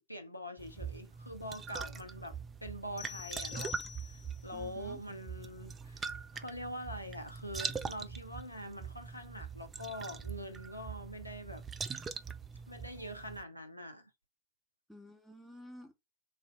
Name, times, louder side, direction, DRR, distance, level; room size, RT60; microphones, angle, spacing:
voice 1, 0.0-11.6 12.7-14.1, equal, 90° left, 0.6 m, -44 dB
sound 1, 0.6-13.4, right 6 dB, 20° right, 0.5 m, -43 dB
sound 2, 3.0-4.5, left 9 dB, 35° left, 0.8 m, -46 dB
voice 2, 4.5-5.0 14.9-15.9, equal, ahead, 1.2 m, -52 dB
4.0 x 2.7 x 4.3 m
figure-of-eight pair, 90°, 0 cm